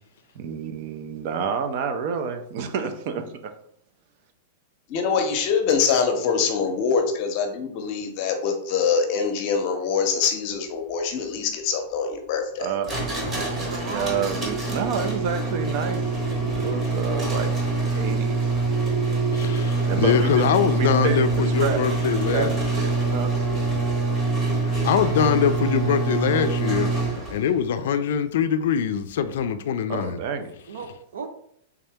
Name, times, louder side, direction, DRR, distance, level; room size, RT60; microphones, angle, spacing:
voice 1, 0.3-3.5 12.6-12.9 13.6-16.0 16.4-17.5 17.9-18.5 19.7-20.5 20.7-21.3 21.6-21.9 22.3-23.3 29.9-30.6, right 6 dB, 45° right, 0.5 m, -29 dB
voice 2, 4.9-12.7, left 6 dB, 40° left, 0.7 m, -24 dB
sound 1, 12.8-27.5, right 3 dB, 15° right, 1.0 m, -25 dB
voice 3, 13.2-14.2 20.3-20.5 21.2-21.4 30.7-31.3, right 4 dB, 85° right, 0.7 m, -37 dB
voice 4, 19.3-22.5 24.6-26.9 27.3-30.2, left 8 dB, 70° left, 0.4 m, -23 dB
3.5 x 2.8 x 3.4 m
supercardioid pair, 155°, 0 cm